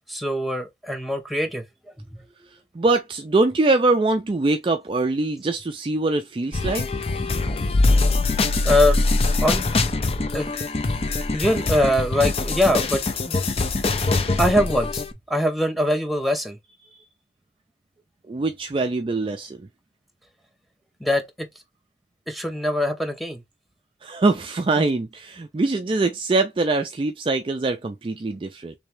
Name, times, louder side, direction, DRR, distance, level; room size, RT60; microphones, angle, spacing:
voice 1, 0.1-1.6 8.6-9.0 9.4-9.6 10.3-10.5 11.3-13.4 14.4-16.6 21.0-21.5 22.3-23.4 24.8-24.9, left 1 dB, ahead, 0.7 m, -22 dB
voice 2, 2.7-6.9 18.3-19.6 24.0-28.7, right 3 dB, 30° right, 0.3 m, -23 dB
sound 1, 6.5-15.1, left 3 dB, 35° left, 0.4 m, -23 dB
3.3 x 3.1 x 3.2 m
head